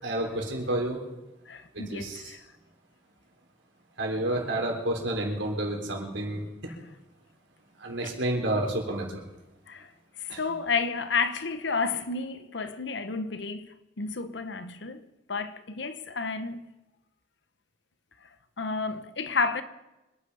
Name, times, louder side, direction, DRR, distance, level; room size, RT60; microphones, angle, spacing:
voice 1, 0.0-1.0 1.7-2.4 4.0-6.7 7.8-9.1 10.3-10.4, right 1 dB, 90° right, 4.0 m, -30 dB
voice 2, 1.5-2.4 8.0-8.1 9.7-9.9 10.2-15.0 15.3-16.6 18.6-19.6, left 4 dB, 70° left, 1.0 m, -31 dB
25.5 x 9.7 x 5.6 m
head